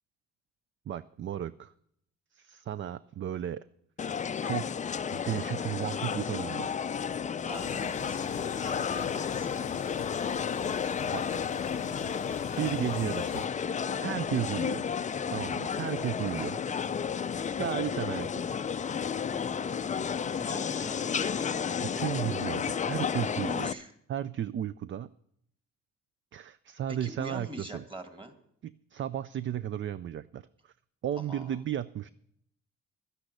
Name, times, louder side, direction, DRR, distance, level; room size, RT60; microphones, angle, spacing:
voice 1, 0.9-1.7 2.3-3.6 4.4-4.7 5.1-6.7 11.1-11.4 12.6-13.5 14.0-14.8 15.3-16.5 17.5-18.5 21.8-23.7 24.1-25.1 26.3-27.8 28.6-30.7 31.0-32.1, right 10 dB, 40° right, 16 dB, 0.4 m, -34 dB
sound 1, 4.0-23.7, left 7 dB, 25° left, 0.4 m, -32 dB
voice 2, 7.4-8.3 8.6-9.5 15.9-16.1 16.4-16.6 20.3-21.8 23.4-23.9 26.9-28.3 31.2-31.6, right 1 dB, 15° right, 7 dB, 2.1 m, -43 dB
sound 2, 7.5-13.5, left 10 dB, 60° left, 0.7 m, -43 dB
12.0 x 10.0 x 6.7 m, 0.72 s
cardioid pair, 90°, 30 cm